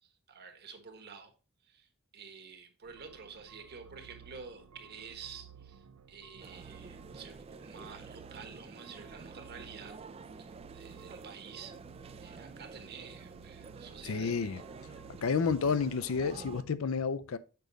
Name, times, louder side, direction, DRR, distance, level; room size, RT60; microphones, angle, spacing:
voice 1, 0.0-1.3 1.6-10.0 10.4-11.7 12.2-14.7, right 5 dB, 50° right, 1.2 m, -50 dB
sound 1, 2.8-16.7, right 7 dB, 80° right, 0.5 m, -55 dB
sound 2, 6.4-16.6, right 4 dB, 30° right, 0.3 m, -49 dB
voice 2, 14.0-14.6 15.2-17.4, left 5 dB, 65° left, 0.5 m, -30 dB
6.8 x 5.1 x 3.9 m
head